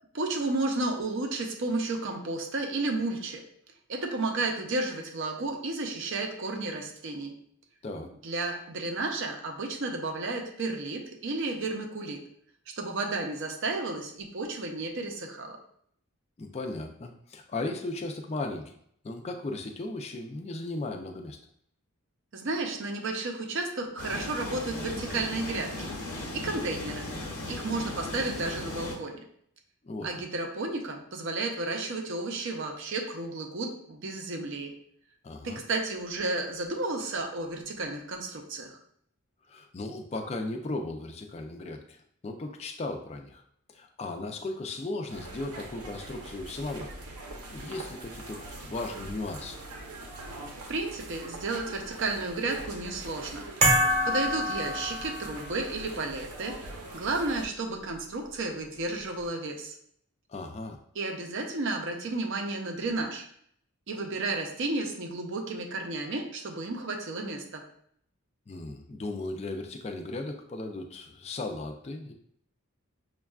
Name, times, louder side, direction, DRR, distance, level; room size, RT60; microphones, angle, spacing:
voice 1, 0.1-3.4 3.9-7.3 8.2-12.2 12.8-15.6 22.3-25.9 26.3-27.1 27.5-29.2 30.0-34.7 35.4-38.8 50.7-53.5 54.0-59.8 61.0-63.3 63.9-67.6, right 2 dB, 55° right, 3 dB, 0.6 m, -32 dB
voice 2, 16.4-18.7 19.0-21.4 29.8-30.1 35.2-35.6 39.5-42.0 42.2-43.4 43.7-46.9 47.5-49.6 60.3-60.8 68.5-72.1, left 2 dB, 30° left, 3 dB, 0.3 m, -36 dB
sound 1, 24.0-29.0, left 1 dB, 90° left, 0.9 m, -37 dB
sound 2, 45.1-57.5, right 2 dB, 90° right, 0.8 m, -43 dB
sound 3, 53.6-55.5, equal, 30° right, 0.9 m, -25 dB
6.2 x 2.3 x 2.3 m, 0.67 s
head